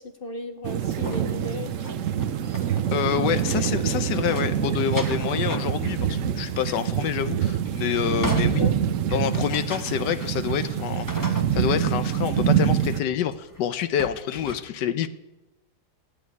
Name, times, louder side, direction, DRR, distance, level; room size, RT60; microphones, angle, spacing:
voice 1, 0.0-1.9 8.1-8.3 8.6-8.8, left 2 dB, 50° left, 7 dB, 0.6 m, -36 dB
sound 1, 0.6-13.0, right 9 dB, 60° right, 0.8 m, -25 dB
sound 2, 1.0-4.0 4.2-6.1 6.4-6.5 7.4-11.9 13.0-13.6 14.0-14.6, left 1 dB, 15° left, 1.1 m, -37 dB
voice 2, 2.9-8.6 9.1-15.1, left 9 dB, 80° left, 12 dB, 1.4 m, -27 dB
12.0 x 8.8 x 9.5 m, 1.0 s
omnidirectional pair, 1.9 m